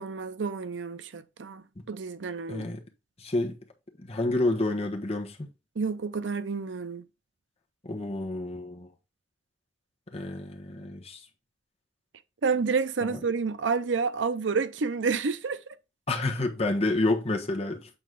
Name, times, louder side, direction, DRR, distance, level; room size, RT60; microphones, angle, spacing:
voice 1, 0.0-2.8 5.8-7.0 12.4-15.6, right 5 dB, 90° right, 0.6 m, -29 dB
voice 2, 2.5-2.8 3.2-3.6 4.0-5.5 7.8-8.9 10.1-11.2 13.1-13.2 16.1-17.9, left 2 dB, 35° left, 1.3 m, -29 dB
8.0 x 4.2 x 3.8 m
head